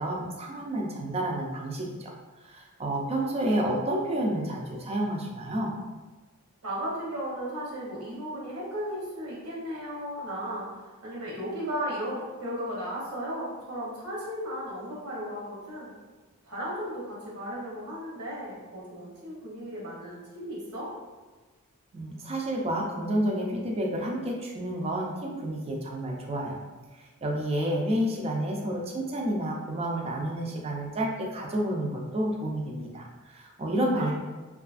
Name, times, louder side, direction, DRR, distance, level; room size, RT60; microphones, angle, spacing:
voice 1, 0.0-2.1 2.4-5.7 21.9-26.6 27.2-34.1, right 1 dB, 30° right, 0 dB, 0.4 m, -30 dB
voice 2, 6.6-15.9 16.4-20.9 34.0-34.1, equal, 75° right, -5 dB, 0.9 m, -35 dB
2.7 x 2.4 x 2.4 m, 1.3 s
head